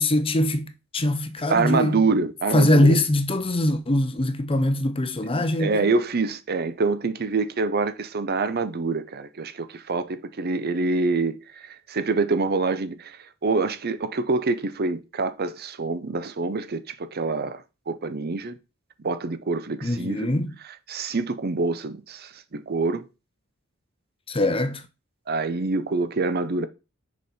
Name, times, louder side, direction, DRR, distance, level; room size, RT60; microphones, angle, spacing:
voice 1, 0.0-2.0 2.5-5.9 19.8-20.5 24.3-24.8, left 1 dB, 25° left, 0.8 m, -22 dB
voice 2, 1.5-3.0 5.6-18.6 19.0-20.3 20.6-23.0 25.3-26.7, right 3 dB, 45° right, 0.7 m, -26 dB
6.5 x 5.3 x 4.3 m
head